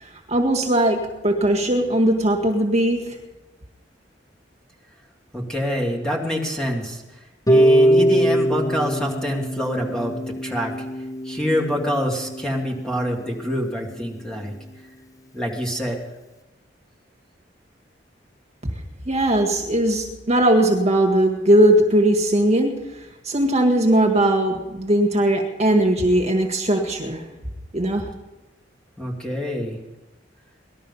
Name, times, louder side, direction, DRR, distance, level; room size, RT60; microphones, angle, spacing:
voice 1, 0.0-3.2 19.1-22.8 23.2-27.2 27.7-28.1, right 1 dB, 35° right, 2 dB, 1.8 m, -19 dB
voice 2, 5.3-7.0 7.5-10.1 10.4-10.7 11.2-14.5 15.3-16.0 29.0-29.8, equal, 5° left, -1 dB, 2.9 m, -25 dB
Harp, 7.5-13.5, right 1 dB, 20° left, 0.7 m, -22 dB
19.5 x 12.5 x 5.7 m, 1.1 s
head